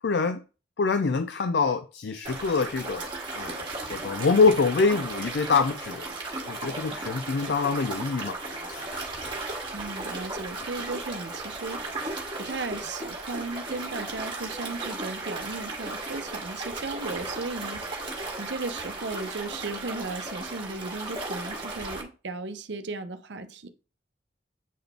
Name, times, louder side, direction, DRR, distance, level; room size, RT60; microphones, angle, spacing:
voice 1, 0.0-0.4 0.8-6.1 6.4-8.4 8.7-9.4, left 4 dB, 70° left, 0.4 m, -25 dB
sound 1, 2.2-22.0, right 2 dB, 30° right, 1.7 m, -35 dB
voice 2, 9.7-17.8 18.4-23.7, right 3 dB, 80° right, 0.7 m, -36 dB
8.4 x 3.9 x 3.5 m
head